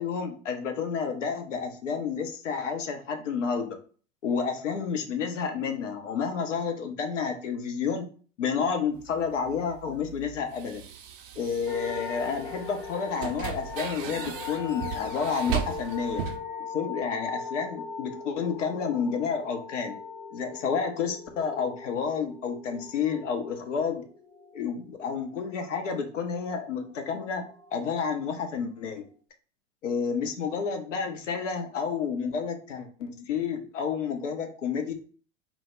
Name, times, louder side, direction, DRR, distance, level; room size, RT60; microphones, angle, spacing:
voice 1, 0.0-3.8 4.2-8.1 8.4-10.8 11.4-16.2 16.7-20.0 20.3-24.0 24.5-27.4 27.7-29.1 29.8-34.9, left 6 dB, 80° left, 6 dB, 0.6 m, -30 dB
sound 1, 8.9-16.4, right 9 dB, 50° right, 0.4 m, -37 dB
sound 2, 11.7-26.5 26.8-28.2 28.8-28.9, left 5 dB, 5° left, 0.6 m, -40 dB
2.0 x 2.0 x 3.2 m, 0.41 s
figure-of-eight pair, 85°, 37 cm